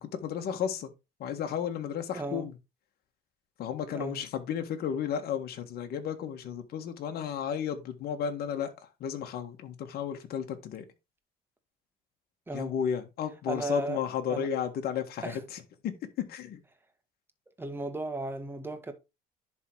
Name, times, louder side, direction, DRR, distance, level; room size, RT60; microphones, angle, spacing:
voice 1, 0.0-0.9 1.2-2.6 3.6-10.8 12.5-16.6, left 8 dB, 65° left, 1.5 m, -33 dB
voice 2, 2.1-2.5 3.9-4.2 12.5-12.7 13.5-14.0 14.3-14.5 15.2-15.4 17.6-18.9, right 2 dB, 15° right, 1.5 m, -35 dB
11.0 x 3.7 x 4.6 m
cardioid pair, 110°, 17 cm